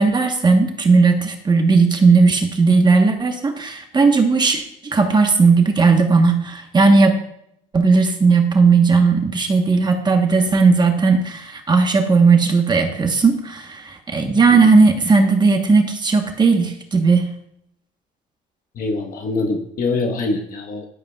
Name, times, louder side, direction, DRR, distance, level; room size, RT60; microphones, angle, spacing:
voice 1, 0.0-7.2 7.7-17.3, right 4 dB, 25° right, 5 dB, 1.1 m, -16 dB
voice 2, 18.8-20.8, left 3 dB, 55° left, 3 dB, 1.3 m, -24 dB
13.0 x 12.0 x 2.3 m, 0.75 s
cardioid pair, 110°, 17 cm